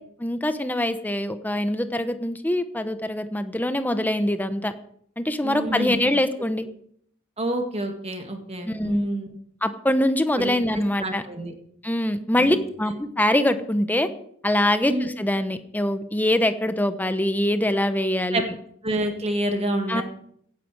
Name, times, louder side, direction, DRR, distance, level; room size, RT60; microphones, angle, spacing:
voice 1, 0.2-4.7 5.2-6.7 8.6-9.0 9.6-11.2 11.8-14.1 14.4-18.4 19.9-20.0, left 1 dB, 10° left, 10 dB, 0.8 m, -23 dB
voice 2, 5.4-6.0 7.4-9.4 10.4-10.6 11.0-11.5 12.4-12.6 14.8-15.1 18.3-18.4 18.8-20.0, right 1 dB, 30° right, 4 dB, 1.8 m, -28 dB
16.5 x 9.7 x 4.8 m, 0.67 s
head